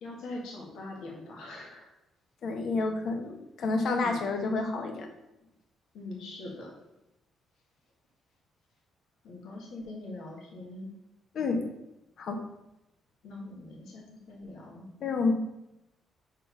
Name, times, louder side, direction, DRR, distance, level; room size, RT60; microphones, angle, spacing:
voice 1, 0.0-1.9 3.9-4.2 5.9-6.8 9.2-10.9 13.2-14.8, left 2 dB, 85° left, -2 dB, 1.7 m, -42 dB
voice 2, 2.4-5.1 11.3-11.7 12.2-12.4 15.0-15.3, left 3 dB, 65° left, 5 dB, 0.9 m, -29 dB
4.8 x 4.6 x 5.1 m, 0.91 s
cardioid pair, 90°, 0 cm